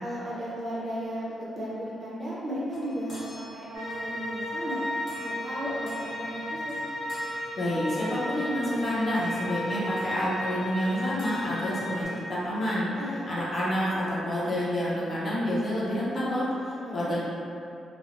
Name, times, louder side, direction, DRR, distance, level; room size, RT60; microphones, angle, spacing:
voice 1, 0.0-4.8 5.2-6.8 12.9-13.3 16.8-17.1, equal, 25° right, -8 dB, 0.6 m, -35 dB
sound 1, 2.2-12.9, left 1 dB, 50° left, 1.0 m, -50 dB
sound 2, 3.7-12.0, left 1 dB, 85° left, 0.8 m, -34 dB
voice 2, 7.6-12.9 13.3-17.2, equal, 35° left, -8 dB, 0.6 m, -28 dB
3.2 x 2.0 x 2.5 m, 2.7 s
wide cardioid pair, 160°, 0 cm